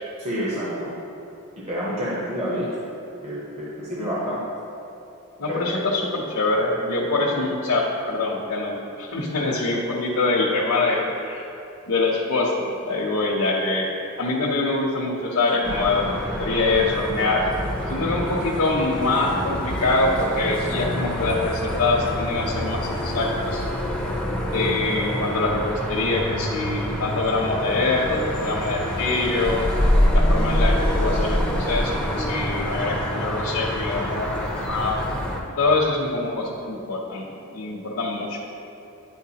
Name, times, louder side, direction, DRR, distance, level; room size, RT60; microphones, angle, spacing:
voice 1, 0.2-0.9 1.7-2.7 3.2-4.4 5.5-5.8, equal, 30° right, -7 dB, 0.8 m, -28 dB
voice 2, 5.4-11.4 11.9-12.5 12.8-13.9 14.2-16.0 16.4-17.4 17.9-23.6 24.5-29.6 30.1-31.4 31.7-35.0 35.6-38.4, left 2 dB, 75° left, -4 dB, 0.7 m, -24 dB
sound 1, 15.6-35.4, equal, 5° left, 0.5 m, -26 dB
9.9 x 4.5 x 2.8 m, 2.8 s
head